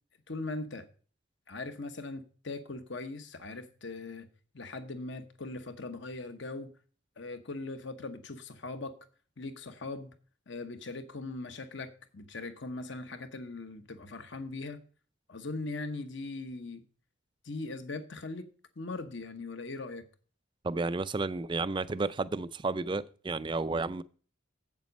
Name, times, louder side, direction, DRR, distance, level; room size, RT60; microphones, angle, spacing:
voice 1, 0.3-0.9 1.5-4.3 4.5-6.7 7.2-9.0 9.4-10.1 10.5-14.8 15.3-16.8 17.4-18.5 18.8-20.0, left 3 dB, 60° left, 1.0 m, -40 dB
voice 2, 20.6-24.0, right 3 dB, 25° right, 0.4 m, -32 dB
8.1 x 7.3 x 5.3 m
head